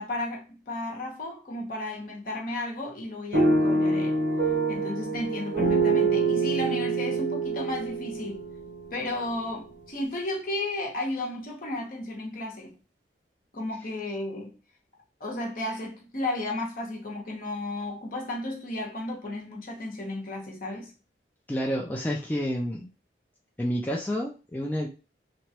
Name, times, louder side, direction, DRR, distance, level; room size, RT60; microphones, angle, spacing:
voice 1, 0.0-4.2 4.7-8.5 8.9-12.7 13.5-14.5 15.2-20.9, left 1 dB, 50° left, 0.9 m, -33 dB
sound 1, 3.3-9.4, right 3 dB, 80° right, 1.0 m, -26 dB
voice 2, 21.5-22.9 23.6-24.9, equal, 10° left, 0.3 m, -29 dB
3.0 x 2.2 x 2.8 m
head